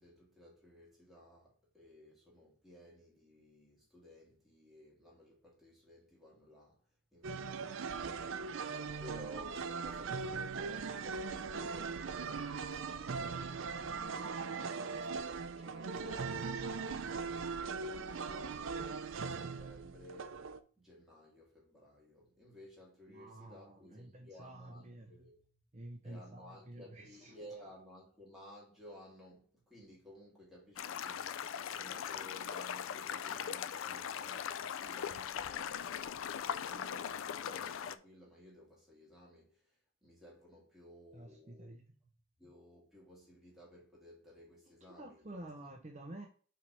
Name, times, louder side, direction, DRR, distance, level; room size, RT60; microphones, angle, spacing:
voice 1, 0.0-6.8 7.1-17.8 18.2-20.4 20.8-25.6 26.0-42.1 42.4-45.4, equal, ahead, 2.0 m, -57 dB
sound 1, 7.2-20.6, right 5 dB, 75° right, 0.5 m, -40 dB
voice 2, 23.1-25.1 25.7-27.3 41.1-41.9 44.9-46.3, right 1 dB, 35° right, 0.7 m, -50 dB
sound 2, 30.8-38.0, left 8 dB, 80° left, 0.4 m, -40 dB
5.7 x 3.2 x 5.4 m
head